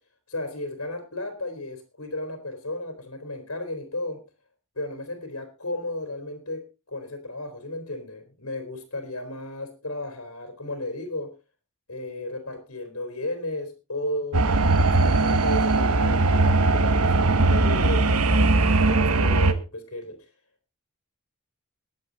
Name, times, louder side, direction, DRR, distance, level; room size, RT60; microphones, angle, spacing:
voice 1, 0.3-4.2 4.8-11.3 11.9-14.4 14.7-18.0 18.3-20.3, left 1 dB, 70° left, 5 dB, 3.6 m, -34 dB
sound 1, 14.3-19.5, right 2 dB, 85° right, 1.3 m, -20 dB
21.0 x 8.1 x 4.0 m, 0.30 s
head